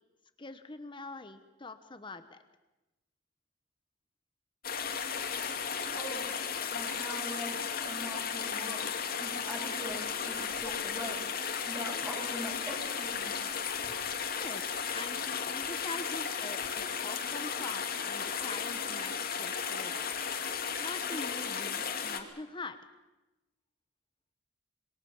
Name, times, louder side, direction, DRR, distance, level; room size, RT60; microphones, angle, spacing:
voice 1, 0.4-2.4 14.4-20.1 20.8-22.8, left 3 dB, 25° left, 9 dB, 1.1 m, -44 dB
sound 1, 4.6-22.2, left 6 dB, 55° left, 2.6 m, -35 dB
voice 2, 5.8-6.3 6.7-8.9 9.2-11.3 11.7-13.6, equal, 15° right, -1 dB, 7.7 m, -42 dB
26.5 x 22.5 x 7.3 m, 1.0 s
head